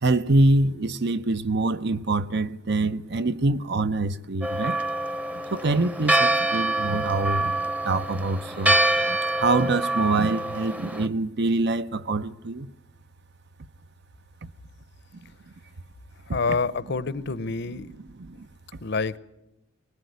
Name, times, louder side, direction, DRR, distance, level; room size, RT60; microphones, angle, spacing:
voice 1, 0.0-4.8 5.3-8.8 9.1-12.7 18.1-18.5, right 2 dB, 60° right, 0.8 m, -25 dB
Church bell, 4.4-11.1, right 1 dB, 10° right, 0.8 m, -25 dB
voice 2, 16.3-17.9 18.8-19.2, left 4 dB, 60° left, 0.8 m, -27 dB
24.0 x 20.0 x 9.4 m
head